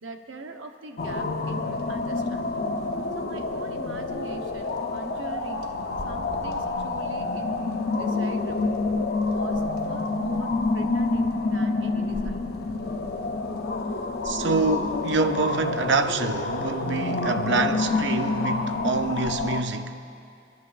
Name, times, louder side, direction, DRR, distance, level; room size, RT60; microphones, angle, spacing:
voice 1, 0.0-2.7 3.1-5.7 6.0-8.8 9.2-12.5, right 3 dB, 90° right, 0.9 m, -42 dB
sound 1, 1.0-19.6, left 3 dB, 55° left, 0.6 m, -28 dB
voice 2, 14.2-20.0, right 4 dB, 65° right, 0.6 m, -26 dB
29.5 x 10.5 x 2.5 m
head